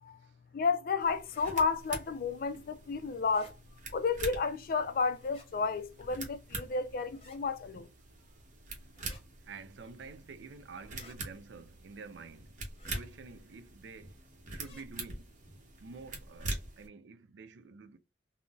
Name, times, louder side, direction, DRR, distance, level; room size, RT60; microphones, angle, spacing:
voice 1, 0.5-3.6 3.9-7.9, left 5 dB, 55° left, 0.4 m, -32 dB
sound 1, 1.0-16.9, right 2 dB, 45° right, 0.9 m, -45 dB
sound 2, 1.2-1.5 3.2-3.5 5.2-5.5 7.1-7.4 8.9-9.2 10.9-11.2 12.7-13.0 14.5-14.8, left 2 dB, 35° left, 0.9 m, -56 dB
voice 2, 9.4-12.6 12.9-14.2 14.5-15.3 15.8-18.0, right 4 dB, 90° right, 0.4 m, -49 dB
3.7 x 2.0 x 2.3 m
head